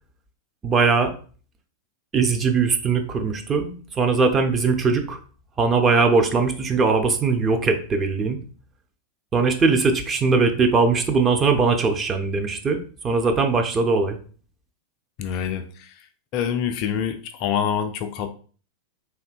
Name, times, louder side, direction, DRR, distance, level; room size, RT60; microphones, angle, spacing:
voice 1, 0.6-1.1 2.1-5.2 5.6-8.4 9.3-14.2, right 4 dB, 20° right, 5 dB, 0.5 m, -20 dB
voice 2, 15.2-15.9 16.3-18.3, left 8 dB, 40° left, 7 dB, 0.3 m, -26 dB
3.3 x 2.6 x 2.3 m, 0.41 s
figure-of-eight pair, 90°, 0 cm